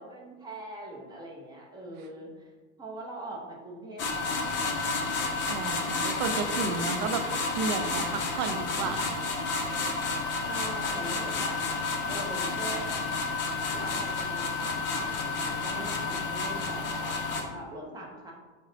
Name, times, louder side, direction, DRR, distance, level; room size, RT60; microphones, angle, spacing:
voice 1, 0.0-2.5 2.8-5.3 10.4-11.6 12.1-12.9 13.7-18.3, right 2 dB, 10° right, -2 dB, 0.6 m, -42 dB
sound 1, 4.0-17.4, left 3 dB, 30° left, 0.5 m, -31 dB
voice 2, 5.5-7.2 7.5-9.1, right 5 dB, 55° right, 7 dB, 0.4 m, -32 dB
4.7 x 2.1 x 2.7 m, 1.3 s
hypercardioid pair, 110°, 38 cm